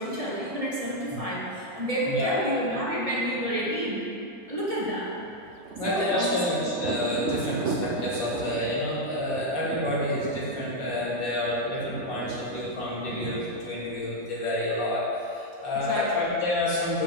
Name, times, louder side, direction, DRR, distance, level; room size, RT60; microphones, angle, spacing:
voice 1, 0.0-4.0 4.5-5.1 5.8-6.5 15.7-16.2, equal, 20° right, -7 dB, 1.7 m, -29 dB
voice 2, 2.1-2.4 5.8-17.0, left 1 dB, 90° left, -7 dB, 3.1 m, -29 dB
Thunder, 5.2-14.7, right 4 dB, 70° right, 0.7 m, -36 dB
7.6 x 6.6 x 7.4 m, 2.6 s
omnidirectional pair, 1.9 m